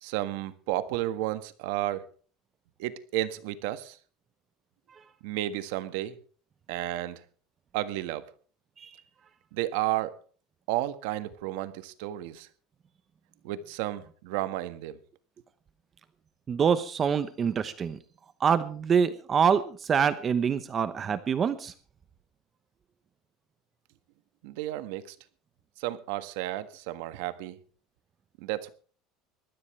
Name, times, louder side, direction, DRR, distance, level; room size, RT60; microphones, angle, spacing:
voice 1, 0.0-2.1 2.8-4.0 5.2-6.2 6.7-7.2 7.7-8.3 9.5-10.1 10.7-12.5 13.4-15.0 24.4-25.1 25.8-27.6 28.4-28.7, right 14 dB, 75° right, 13 dB, 1.5 m, -32 dB
voice 2, 16.5-18.0 18.4-21.7, right 7 dB, 25° right, 13 dB, 0.9 m, -25 dB
20.5 x 14.5 x 3.3 m, 0.41 s
cardioid pair, 155°, 0 cm